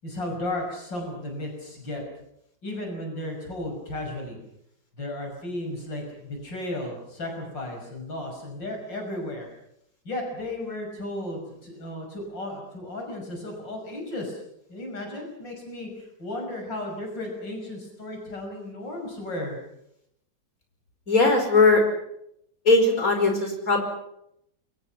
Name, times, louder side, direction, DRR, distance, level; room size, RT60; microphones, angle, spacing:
voice 1, 0.0-2.0 2.6-4.4 5.0-9.5 10.0-14.4 14.7-15.9 16.2-19.6, left 1 dB, 90° left, 2 dB, 6.7 m, -34 dB
voice 2, 21.1-21.8 22.6-23.8, left 3 dB, 50° left, 4 dB, 5.7 m, -19 dB
27.5 x 23.5 x 5.8 m, 0.76 s
omnidirectional pair, 1.9 m